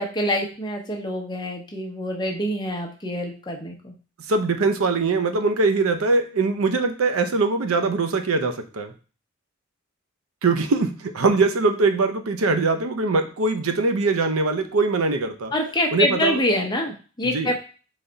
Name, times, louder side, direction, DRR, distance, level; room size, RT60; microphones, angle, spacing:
voice 1, 0.0-3.9 15.5-17.5, left 1 dB, 20° left, 1 dB, 0.8 m, -25 dB
voice 2, 4.3-8.9 10.4-15.5 15.9-16.4 17.2-17.5, right 3 dB, 80° right, 7 dB, 0.6 m, -22 dB
4.0 x 3.3 x 3.9 m, 0.36 s
head